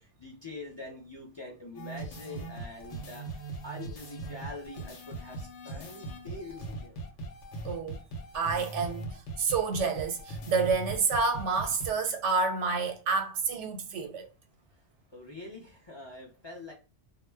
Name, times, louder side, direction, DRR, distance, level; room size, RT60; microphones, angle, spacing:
voice 1, 0.0-7.0 14.7-14.8 15.1-16.7, left 2 dB, 40° left, 0.4 m, -44 dB
sound 1, 1.7-11.9, right 2 dB, 90° left, 1.0 m, -40 dB
voice 2, 7.6-7.9 8.3-14.2, right 4 dB, 90° right, 1.0 m, -29 dB
2.2 x 2.0 x 3.2 m
omnidirectional pair, 1.2 m